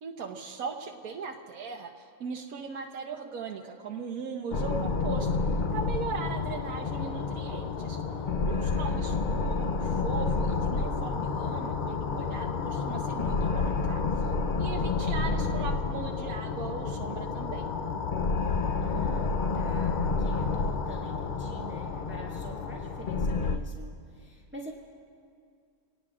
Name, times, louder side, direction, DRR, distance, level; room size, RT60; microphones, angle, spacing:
voice 1, 0.0-14.3 14.6-17.7, right 5 dB, 75° right, 1 dB, 1.3 m, -39 dB
sound 1, 4.5-23.6, left 4 dB, 60° left, 0.5 m, -29 dB
voice 2, 8.5-9.0 14.9-15.4 18.8-24.7, equal, 10° right, -3 dB, 1.6 m, -45 dB
27.5 x 19.0 x 2.4 m, 2.3 s
omnidirectional pair, 1.6 m